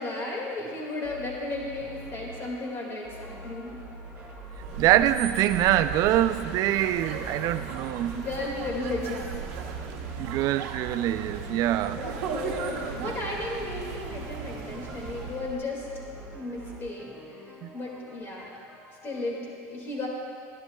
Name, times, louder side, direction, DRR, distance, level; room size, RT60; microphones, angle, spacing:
voice 1, 0.0-3.8 8.1-9.4 11.9-15.9 16.3-18.5 19.0-20.1, left 2 dB, 30° left, -2 dB, 2.0 m, -34 dB
sound 1, 0.6-1.2 1.7-13.2 13.5-19.5, equal, 5° left, 1.6 m, -51 dB
sound 2, 1.0-17.0, right 1 dB, 25° right, 1.9 m, -45 dB
sound 3, 4.5-15.6, right 6 dB, 75° right, 1.0 m, -37 dB
voice 2, 4.8-8.2 10.2-12.0 17.6-17.8, right 13 dB, 50° right, 12 dB, 0.4 m, -24 dB
12.0 x 10.5 x 2.3 m, 2.3 s
supercardioid pair, 130°, 8 cm